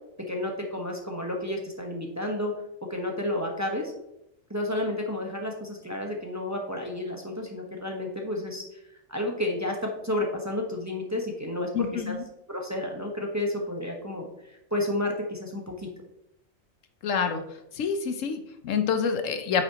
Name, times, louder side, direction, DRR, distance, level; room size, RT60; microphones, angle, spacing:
voice 1, 0.3-2.5 2.9-3.9 4.5-8.6 9.1-12.1 12.5-15.9, left 1 dB, 15° right, 1 dB, 1.0 m, -31 dB
voice 2, 11.7-12.2 17.0-17.4 17.7-19.6, left 6 dB, 75° left, 8 dB, 1.1 m, -27 dB
8.8 x 6.5 x 2.9 m, 0.84 s
omnidirectional pair, 1.4 m